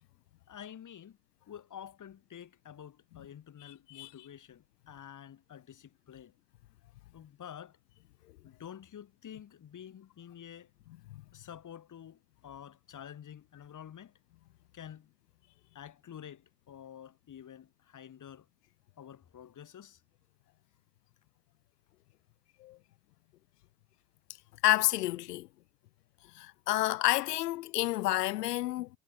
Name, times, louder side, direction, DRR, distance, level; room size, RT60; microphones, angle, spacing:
voice 1, 0.5-1.2 1.5-6.3 7.1-7.8 8.4-10.7 11.3-14.1 14.7-15.1 15.7-18.5 19.0-20.0, left 9 dB, 40° left, 6.0 m, -49 dB
voice 2, 3.6-4.1 11.1-11.2 22.6-22.8 24.6-25.5 26.3-28.9, left 17 dB, 75° left, 1.7 m, -29 dB
hypercardioid pair, 75°, 47 cm